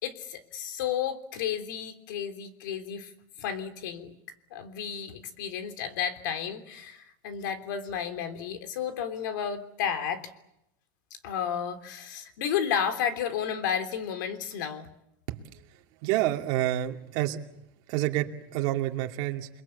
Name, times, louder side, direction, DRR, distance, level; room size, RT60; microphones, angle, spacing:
voice 1, 0.0-3.1 3.4-4.1 4.5-10.3 11.2-14.9, left 8 dB, 70° left, 8 dB, 3.4 m, -32 dB
voice 2, 16.0-17.4 17.9-19.5, right 14 dB, 45° right, 3 dB, 2.6 m, -28 dB
29.0 x 22.0 x 8.5 m, 0.85 s
supercardioid pair, 160°, 11 cm